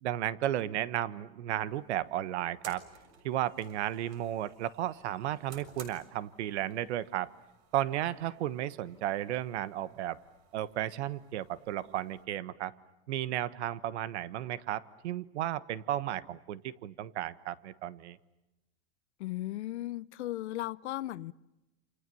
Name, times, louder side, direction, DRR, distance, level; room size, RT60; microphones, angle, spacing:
voice 1, 0.0-2.8 3.2-7.3 7.7-10.2 10.5-12.7 13.1-18.2, right 12 dB, 85° right, 1.4 m, -34 dB
sound 1, 1.6-12.3, right 7 dB, 65° right, 6.7 m, -56 dB
voice 2, 19.2-21.3, left 15 dB, 90° left, 0.9 m, -36 dB
28.5 x 28.5 x 7.1 m
supercardioid pair, 140°, 33 cm